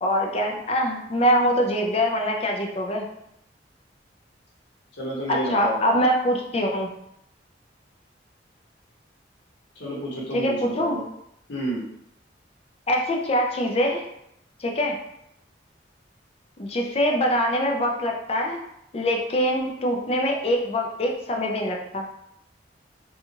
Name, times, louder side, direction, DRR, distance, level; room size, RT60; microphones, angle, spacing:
voice 1, 0.0-3.0 5.3-6.9 10.3-11.0 12.9-14.0 14.6-15.0 16.6-18.6 18.9-22.1, equal, 35° left, 1 dB, 0.4 m, -24 dB
voice 2, 5.0-5.8 9.8-11.0 11.5-11.8, right 1 dB, 85° left, -6 dB, 1.1 m, -30 dB
2.8 x 2.3 x 2.8 m, 0.80 s
head